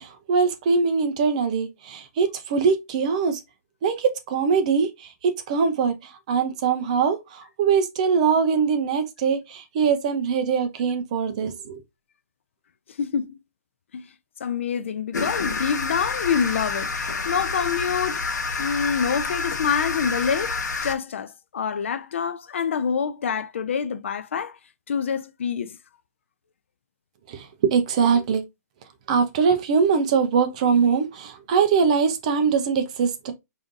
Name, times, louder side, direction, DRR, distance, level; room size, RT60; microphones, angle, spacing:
voice 1, 0.0-3.4 3.8-11.8 27.3-28.4 29.1-33.3, right 6 dB, 25° right, 0.4 m, -22 dB
voice 2, 13.0-13.4 13.9-14.1 14.4-18.2 18.6-24.6 24.9-25.8, left 7 dB, 45° left, 0.3 m, -26 dB
sound 1, 15.1-20.9, left 4 dB, 85° left, 0.8 m, -28 dB
5.0 x 2.6 x 2.5 m
hypercardioid pair, 170°, 9 cm